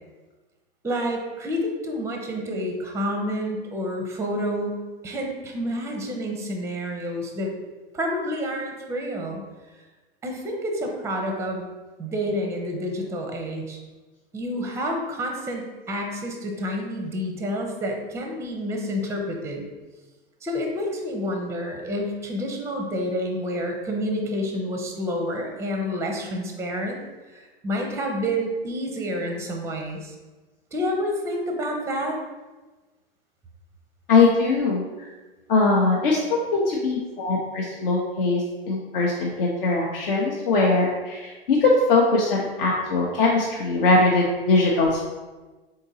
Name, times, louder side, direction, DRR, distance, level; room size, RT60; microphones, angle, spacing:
voice 1, 0.8-7.5 7.9-9.4 10.2-11.6 12.0-13.8 14.3-19.7 20.4-27.0 27.3-30.1 30.7-32.2, equal, 10° right, 2 dB, 0.5 m, -29 dB
voice 2, 34.1-35.1 35.5-45.0, left 3 dB, 65° left, -3 dB, 0.7 m, -21 dB
3.9 x 3.6 x 2.6 m, 1.2 s
hypercardioid pair, 100°, 30 cm